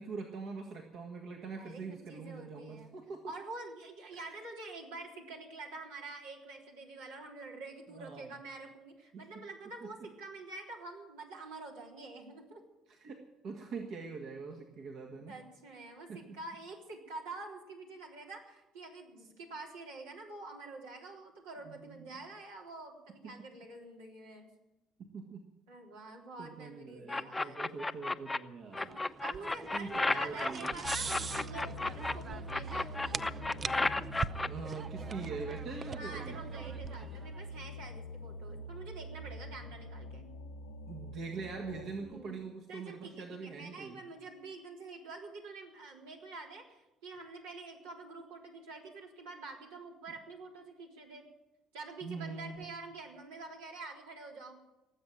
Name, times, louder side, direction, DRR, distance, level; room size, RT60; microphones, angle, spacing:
voice 1, 0.0-3.3 4.1-4.4 7.9-8.3 9.1-9.3 9.8-9.9 12.9-15.3 16.1-16.2 21.6-22.1 23.2-23.3 25.1-25.4 26.4-28.9 29.7-30.7 34.5-36.4 40.9-44.0 52.0-52.6, right 4 dB, 60° right, 2 dB, 1.9 m, -43 dB
voice 2, 2.1-2.9 3.3-12.6 15.3-24.5 25.7-27.6 28.8-33.3 35.6-40.3 42.0-42.4 42.7-51.2 51.7-54.6, right 3 dB, 80° right, -1 dB, 3.6 m, -47 dB
sound 1, 27.1-28.4 28.7-32.1 32.5-34.5, left 2 dB, 15° left, 0.8 m, -33 dB
sound 2, 28.9-37.4, right 5 dB, 35° right, 0.5 m, -43 dB
sound 3, 30.8-42.1, equal, 90° left, 1.0 m, -44 dB
19.0 x 8.0 x 9.0 m, 1.0 s
hypercardioid pair, 60°, 0 cm